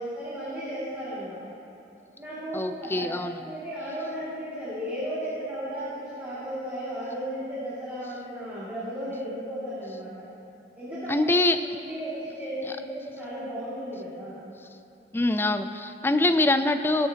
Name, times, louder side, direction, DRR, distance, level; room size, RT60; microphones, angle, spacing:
voice 1, 0.0-1.4 2.2-10.3 10.8-11.3 11.8-14.4, equal, 10° right, -12 dB, 2.2 m, -35 dB
voice 2, 2.5-3.3 11.1-11.6 15.1-17.1, left 2 dB, 10° left, 9 dB, 0.3 m, -24 dB
18.5 x 8.0 x 2.8 m, 2.9 s
head